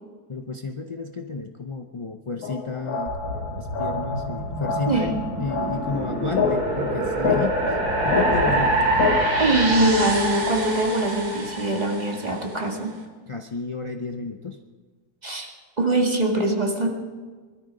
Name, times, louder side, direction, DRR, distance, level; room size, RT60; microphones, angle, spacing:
voice 1, 0.3-9.1 13.3-14.6, left 4 dB, 45° left, 4 dB, 0.4 m, -32 dB
sound 1, 2.4-9.4, left 5 dB, 70° left, 1.6 m, -28 dB
sound 2, 3.1-12.4, right 2 dB, 80° right, 2.9 m, -26 dB
voice 2, 9.4-12.9 15.2-16.9, right 2 dB, 25° right, 1 dB, 2.0 m, -23 dB
21.0 x 13.5 x 5.2 m, 1.5 s
omnidirectional pair, 1.7 m